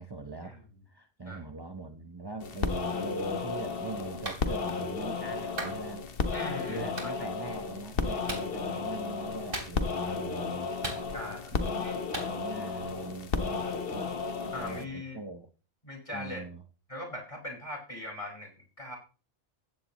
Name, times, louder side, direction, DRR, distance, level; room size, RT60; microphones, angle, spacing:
voice 1, 0.0-6.1 6.7-10.7 11.5-11.9 12.2-14.2 14.6-15.5 16.1-16.6, right 3 dB, 25° right, 6 dB, 1.0 m, -41 dB
sound 1, 2.4-14.8, left 5 dB, 65° left, 1.3 m, -33 dB
Clapping, 4.2-4.4 5.6-5.8 7.0-7.1 8.3-8.5 9.5-10.0 10.8-11.4 12.1-12.3, right 1 dB, 60° right, 3.7 m, -37 dB
voice 2, 6.3-7.1 11.1-12.2 14.5-15.2 15.8-16.5 16.9-19.0, left 1 dB, 30° left, -1 dB, 5.4 m, -40 dB
15.5 x 15.0 x 3.1 m, 0.37 s
omnidirectional pair, 1.1 m